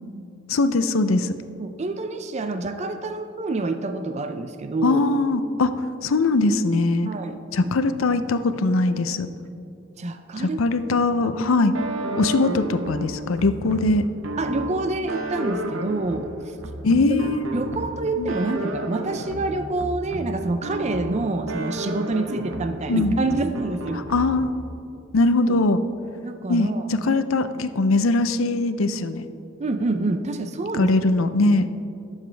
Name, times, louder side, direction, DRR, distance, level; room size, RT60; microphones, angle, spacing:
voice 1, 0.5-1.3 4.8-7.1 7.5-9.3 10.4-11.7 12.2-14.1 16.8-17.5 18.2-18.3 22.9-23.2 23.9-24.5 25.1-25.8 26.5-29.2 30.7-31.7, left 2 dB, 90° left, 11 dB, 0.6 m, -21 dB
voice 2, 1.6-5.0 7.1-7.7 10.0-10.6 12.4-12.5 14.4-16.3 16.9-17.0 17.5-24.0 25.5-25.6 26.2-26.9 29.6-30.9, right 2 dB, 35° right, 7 dB, 0.5 m, -27 dB
sound 1, 11.7-24.6, right 1 dB, 90° right, 1.0 m, -32 dB
19.0 x 7.3 x 3.3 m, 2.6 s
head